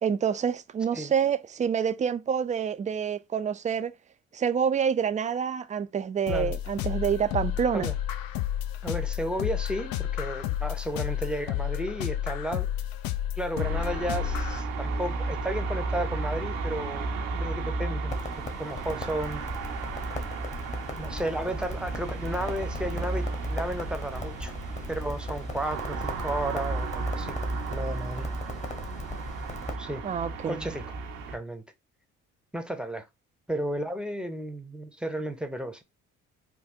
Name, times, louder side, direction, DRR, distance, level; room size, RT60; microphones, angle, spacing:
voice 1, 0.0-3.9 4.3-7.9 30.0-30.7, right 7 dB, 20° right, 0.3 m, -27 dB
techno-x--chor, 6.3-14.6, left 12 dB, 65° left, 0.5 m, -31 dB
voice 2, 8.8-12.7 13.4-18.1 18.6-19.4 21.0-24.5 24.9-27.3 27.7-28.3 29.8-30.0 30.5-30.9 31.3-31.6 32.5-33.0 33.5-35.8, right 1 dB, ahead, 0.7 m, -33 dB
sound 1, 13.6-31.4, right 3 dB, 85° right, 0.7 m, -33 dB
Crackle, 18.1-29.8, left 1 dB, 20° left, 1.0 m, -39 dB
3.5 x 2.3 x 2.7 m
hypercardioid pair, 50°, 39 cm